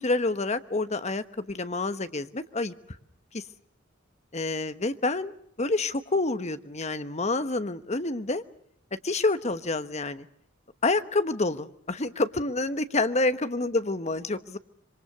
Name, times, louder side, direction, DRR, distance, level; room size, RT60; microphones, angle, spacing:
voice 1, 0.0-2.7 3.3-3.4 4.3-8.4 9.0-10.3 10.8-14.6, left 2 dB, 35° left, 11 dB, 1.1 m, -28 dB
26.0 x 24.0 x 6.6 m, 0.70 s
head